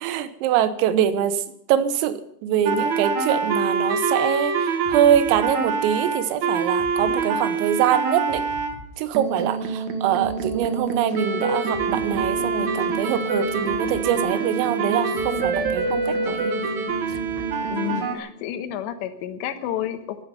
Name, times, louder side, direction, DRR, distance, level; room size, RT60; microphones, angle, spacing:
voice 1, 0.0-1.4 1.7-8.5 9.0-16.6, right 9 dB, 90° right, 12 dB, 3.7 m, -24 dB
sound 1, 2.6-8.7 9.1-18.1, right 4 dB, 65° right, 1.9 m, -25 dB
sound 2, 4.0-6.1 6.4-6.5 6.8-7.2 7.4-9.8 10.2-10.6 10.9-18.2, left 1 dB, 55° left, 2.5 m, -44 dB
voice 2, 17.7-20.2, left 11 dB, 70° left, 8 dB, 3.1 m, -30 dB
15.0 x 12.0 x 6.9 m, 0.76 s
omnidirectional pair, 5.8 m